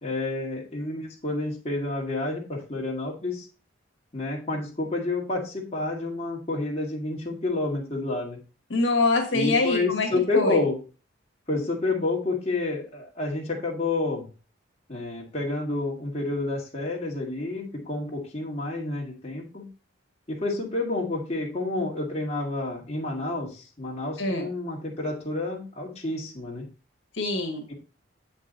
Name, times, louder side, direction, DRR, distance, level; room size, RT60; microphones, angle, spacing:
voice 1, 0.0-3.5 4.1-8.4 9.3-10.8 11.5-14.3 14.9-19.7 20.3-26.7 27.7-27.8, left 2 dB, 30° left, -2 dB, 2.0 m, -29 dB
voice 2, 8.7-10.1 10.3-10.6 24.2-24.5 27.2-27.6, left 3 dB, 65° left, 2 dB, 1.7 m, -24 dB
7.8 x 5.3 x 4.0 m, 0.34 s
head